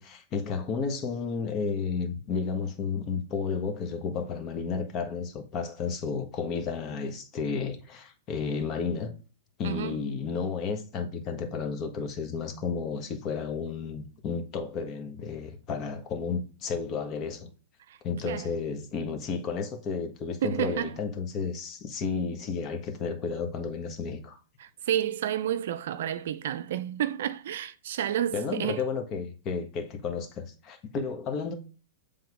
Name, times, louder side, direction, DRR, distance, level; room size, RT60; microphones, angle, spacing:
voice 1, 0.0-9.1 9.6-17.5 18.0-24.4 28.3-31.5, left 5 dB, 35° left, 1.4 m, -32 dB
voice 2, 9.6-10.0 17.9-18.0 18.2-18.5 20.4-20.9 24.6-28.8, right 10 dB, 65° right, 0.5 m, -30 dB
7.7 x 3.6 x 3.6 m
hypercardioid pair, 110°, 0 cm